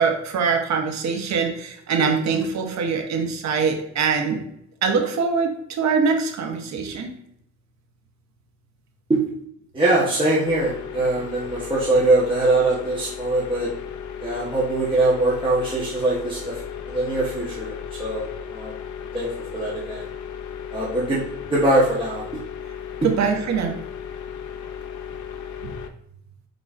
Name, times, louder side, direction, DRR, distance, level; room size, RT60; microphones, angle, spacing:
voice 1, 0.0-4.4 4.8-7.1 23.0-23.8 25.6-25.7, right 5 dB, 65° right, 3 dB, 1.0 m, -23 dB
voice 2, 9.7-13.7 14.2-16.6 16.9-18.7 19.1-19.3 19.5-20.1 20.7-21.2 21.5-22.2, right 2 dB, 15° right, -7 dB, 1.1 m, -22 dB
sound 1, 10.4-25.9, left 8 dB, 75° left, 0.6 m, -35 dB
5.1 x 3.8 x 2.5 m, 0.74 s
cardioid pair, 90°, 30 cm